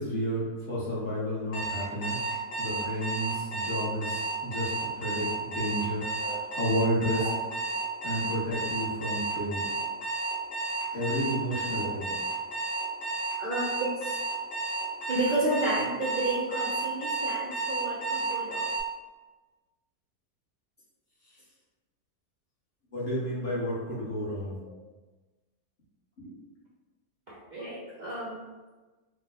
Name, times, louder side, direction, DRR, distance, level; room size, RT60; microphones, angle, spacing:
voice 1, 0.0-7.2 8.0-9.6 10.9-12.1 22.9-24.6 26.2-26.3, equal, 40° left, -8 dB, 1.3 m, -31 dB
Alarm, 1.5-18.8, right 3 dB, 80° left, 1.6 m, -32 dB
voice 2, 6.2-6.6 7.1-7.3 11.8-11.9 13.4-14.2 15.1-18.7 24.6-24.8 27.3-28.4, right 1 dB, 85° right, -7 dB, 0.4 m, -32 dB
4.0 x 2.2 x 3.4 m, 1.2 s
omnidirectional pair, 1.7 m